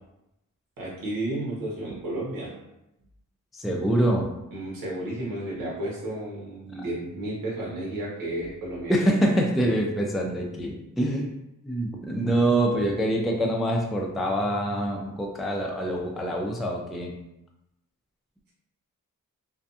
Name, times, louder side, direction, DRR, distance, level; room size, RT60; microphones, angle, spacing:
voice 1, 0.8-2.5 4.5-8.9, right 1 dB, 80° right, -5 dB, 1.0 m, -32 dB
voice 2, 3.5-4.3 6.7-6.8 8.9-11.3 11.6-17.2, right 1 dB, ahead, 0 dB, 0.3 m, -25 dB
2.5 x 2.2 x 2.6 m, 0.90 s
cardioid pair, 70°, 33 cm